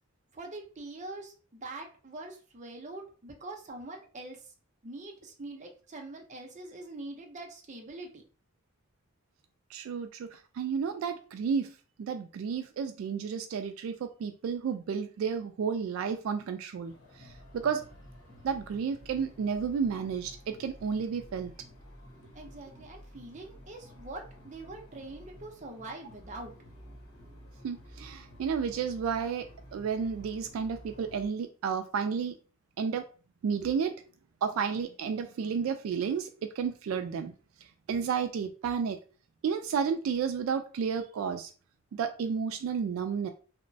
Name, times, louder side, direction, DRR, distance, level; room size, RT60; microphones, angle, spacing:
voice 1, 0.3-4.5 4.8-8.2 22.3-26.5, right 2 dB, 35° right, 1 dB, 0.6 m, -44 dB
voice 2, 9.7-17.9 18.4-21.6 27.6-32.4 32.8-33.1 33.4-34.0 34.4-37.3 37.9-39.0 39.4-41.5 41.9-43.3, right 6 dB, 80° right, 8 dB, 0.3 m, -32 dB
sound 1, 16.8-31.3, equal, 85° left, 0.9 m, -51 dB
2.9 x 2.1 x 2.6 m, 0.37 s
head